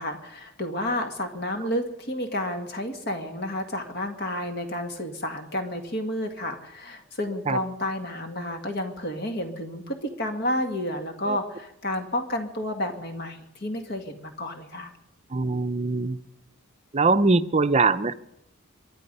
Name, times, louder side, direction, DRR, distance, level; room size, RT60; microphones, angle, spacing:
voice 1, 0.0-14.9, left 1 dB, 50° left, 6 dB, 2.0 m, -31 dB
voice 2, 15.3-16.2 16.9-18.1, right 3 dB, 30° right, 13 dB, 0.6 m, -22 dB
23.0 x 10.5 x 5.4 m, 0.82 s
head